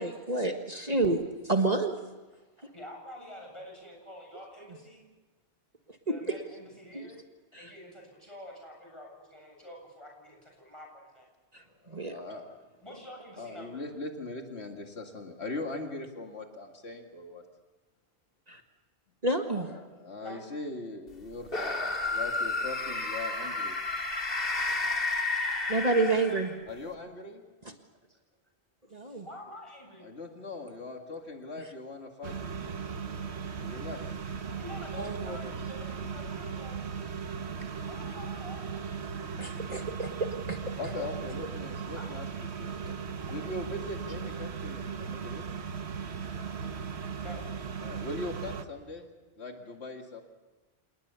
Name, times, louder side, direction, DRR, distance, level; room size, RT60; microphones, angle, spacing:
voice 1, 0.0-1.9 6.9-7.1 7.5-7.7 11.9-12.1 18.5-18.6 19.2-19.7 25.7-26.5 28.9-29.2 35.0-35.4 39.4-40.6, right 2 dB, 40° right, 4 dB, 1.7 m, -29 dB
voice 2, 2.6-5.0 6.0-7.2 7.5-11.3 12.8-13.8 20.2-20.4 26.3-26.5 28.1-28.2 28.9-30.1 34.5-37.1 37.8-39.2 42.0-42.3 43.3-43.5 47.2-47.5, equal, 25° left, 0 dB, 7.8 m, -47 dB
voice 3, 11.8-12.6 13.4-17.4 19.5-23.8 26.7-27.4 30.0-32.8 33.6-34.0 39.2-39.9 40.8-43.0 43.3-45.5 47.8-49.1 49.4-50.2, left 2 dB, 80° left, 3 dB, 2.4 m, -41 dB
sound 1, 21.5-26.7, left 3 dB, 60° left, 2.2 m, -31 dB
sound 2, 32.2-48.6, right 6 dB, 80° right, 1.4 m, -37 dB
28.0 x 19.5 x 6.9 m, 1.2 s
omnidirectional pair, 1.1 m